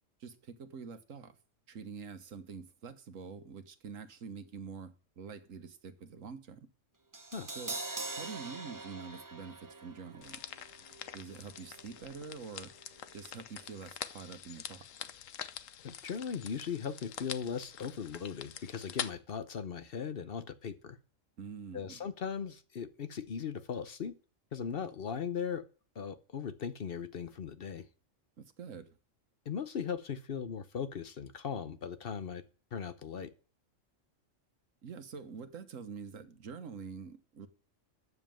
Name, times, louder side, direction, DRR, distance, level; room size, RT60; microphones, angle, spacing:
voice 1, 0.2-1.4 1.7-6.7 7.5-7.8 8.0-10.4 11.1-12.7 13.1-14.8 21.4-22.1 28.4-29.0 34.8-37.5, right 5 dB, 90° right, 1.5 m, -46 dB
Crash cymbal, 7.1-13.3 13.6-13.7, right 2 dB, 20° right, 0.7 m, -45 dB
sound 1, 10.2-19.1, left 10 dB, 90° left, 1.1 m, -45 dB
voice 2, 15.8-21.0 21.7-24.1 24.5-25.7 26.0-27.8 29.5-32.4 32.7-33.3, left 7 dB, 50° left, 0.9 m, -38 dB
9.6 x 7.3 x 7.6 m
omnidirectional pair, 1.3 m